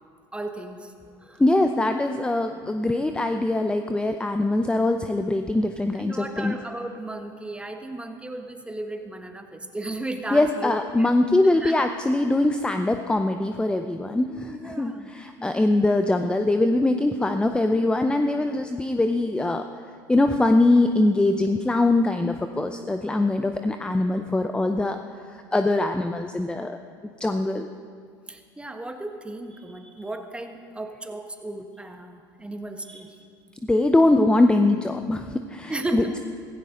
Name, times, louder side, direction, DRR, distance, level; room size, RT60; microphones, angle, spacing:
voice 1, 0.3-0.9 1.2-1.4 5.9-11.1 11.6-11.8 14.3-15.1 15.4-15.8 28.3-33.1 35.7-36.2, right 2 dB, 10° right, 5 dB, 1.4 m, -35 dB
voice 2, 1.4-6.6 10.3-19.6 20.1-25.0 25.5-26.8 27.2-27.7 32.9-33.0 33.7-36.2, left 2 dB, 10° left, 7 dB, 0.6 m, -22 dB
16.0 x 15.5 x 3.9 m, 2.2 s
hypercardioid pair, 80°, 11 cm